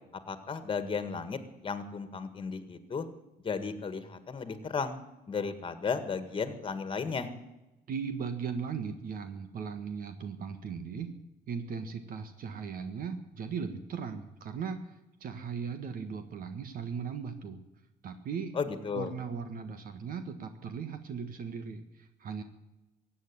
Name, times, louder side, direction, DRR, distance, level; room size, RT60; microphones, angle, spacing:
voice 1, 0.3-3.1 3.4-5.0 5.3-7.3 18.6-19.1, left 5 dB, 30° left, 10 dB, 1.9 m, -34 dB
voice 2, 7.9-11.1 11.5-17.6 18.0-18.5 18.9-22.4, right 6 dB, 55° right, 9 dB, 1.6 m, -38 dB
16.0 x 8.6 x 9.9 m, 0.98 s
cardioid pair, 110°, 17 cm